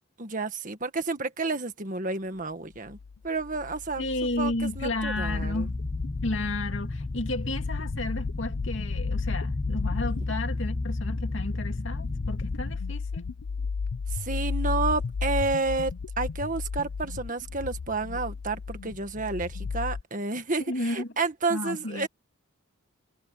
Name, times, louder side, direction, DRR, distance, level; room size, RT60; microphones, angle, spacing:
voice 1, 0.2-3.0 3.2-4.1 4.4-5.7 14.1-22.1, right 3 dB, 40° right, 1.8 m, -30 dB
sound 1, 2.9-20.0, left 5 dB, 90° left, 0.5 m, -34 dB
voice 2, 4.0-5.7 6.2-13.3 20.7-21.1 21.5-22.1, left 2 dB, 60° left, 2.6 m, -32 dB
sound 2, 5.2-12.8, left 2 dB, 20° left, 0.4 m, -32 dB
head